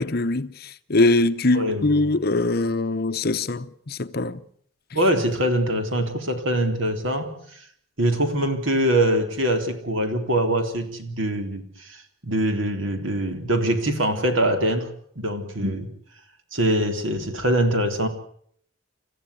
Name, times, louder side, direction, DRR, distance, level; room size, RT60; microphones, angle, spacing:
voice 1, 0.0-4.4, left 2 dB, 50° left, 0.9 m, -22 dB
voice 2, 1.5-2.0 4.9-7.6 8.0-15.9 16.5-18.1, right 1 dB, 65° right, 3.6 m, -23 dB
29.5 x 14.5 x 8.4 m
head